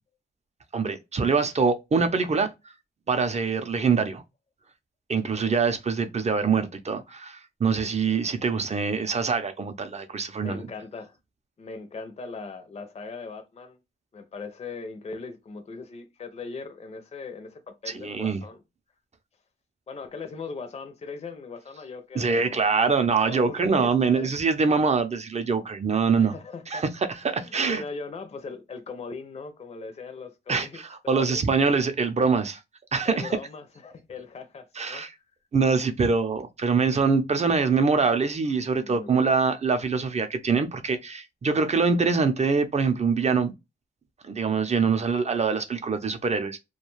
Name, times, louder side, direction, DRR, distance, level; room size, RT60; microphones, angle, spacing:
voice 1, 0.7-2.5 3.1-4.2 5.1-10.7 17.9-18.4 22.2-26.3 26.7-27.8 30.5-32.6 32.9-33.3 34.8-35.1 35.5-43.5 44.3-46.6, right 5 dB, 35° right, 0.5 m, -24 dB
voice 2, 10.4-11.2 11.6-13.8 14.1-18.6 19.9-22.7 23.2-24.3 26.2-26.8 27.2-31.4 33.1-35.0 38.8-39.2, left 4 dB, 35° left, 0.5 m, -39 dB
2.3 x 2.3 x 3.0 m
cardioid pair, 80°, 19 cm